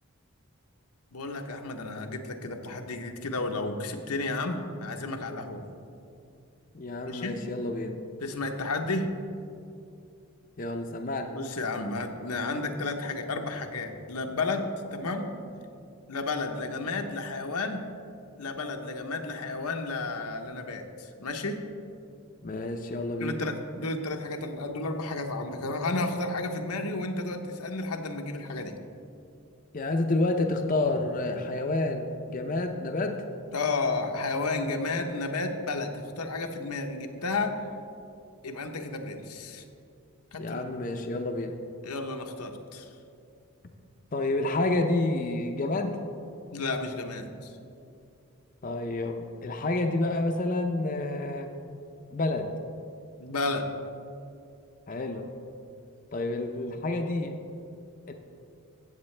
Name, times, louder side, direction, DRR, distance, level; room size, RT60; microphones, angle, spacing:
voice 1, 1.1-5.7 7.1-7.4 8.2-9.1 11.3-15.3 16.1-17.9 18.4-21.6 23.2-28.7 33.5-37.6 38.4-39.6 40.3-40.7 41.8-42.9 46.5-47.5 53.2-53.7, left 3 dB, 90° left, 4 dB, 0.9 m, -32 dB
voice 2, 6.7-8.0 10.6-11.3 22.4-23.4 29.7-33.2 40.4-41.6 44.1-46.0 48.6-51.5 52.1-52.5 54.9-55.3 56.1-57.4 58.1-58.2, left 2 dB, 35° left, 4 dB, 0.5 m, -29 dB
14.5 x 8.1 x 3.2 m, 2.5 s
head